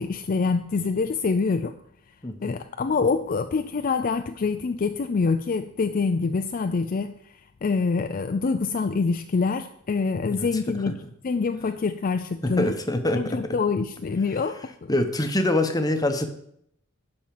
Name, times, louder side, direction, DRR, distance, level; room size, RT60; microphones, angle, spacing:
voice 1, 0.0-1.7 2.4-11.0 11.2-12.7 13.1-15.0, left 4 dB, 40° left, 8 dB, 0.4 m, -26 dB
voice 2, 2.2-2.6 10.3-10.5 10.9-11.0 12.4-13.6 14.9-16.3, left 1 dB, 20° left, 7 dB, 0.9 m, -25 dB
11.5 x 4.4 x 7.6 m, 0.72 s
head